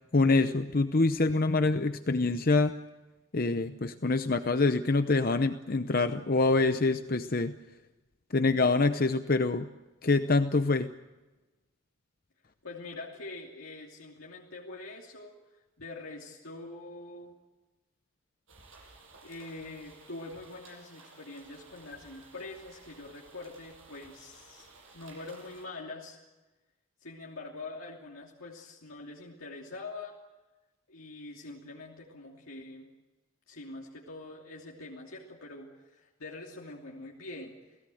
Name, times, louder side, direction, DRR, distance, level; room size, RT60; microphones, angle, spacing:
voice 1, 0.1-2.7 3.3-7.5 8.3-9.7 10.0-10.9, left 3 dB, 45° left, 9 dB, 0.8 m, -25 dB
voice 2, 12.6-17.3 19.2-24.7 24.9-26.2 27.0-30.1 30.9-32.9 33.5-37.8, left 2 dB, 85° left, -2 dB, 2.9 m, -44 dB
sound 1, 18.5-25.7, right 3 dB, 70° right, 7.2 m, -55 dB
29.0 x 17.5 x 7.8 m, 1.1 s
head